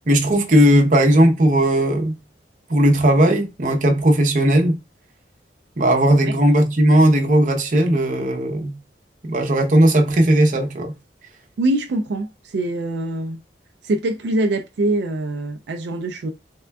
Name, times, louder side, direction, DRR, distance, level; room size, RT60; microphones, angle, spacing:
voice 1, 0.1-2.1 2.7-4.7 5.8-8.8 9.2-10.9, right 1 dB, 45° right, 0.7 m, -16 dB
voice 2, 11.6-13.4 13.8-16.3, right 2 dB, 75° right, 0.4 m, -23 dB
3.6 x 3.3 x 2.3 m
head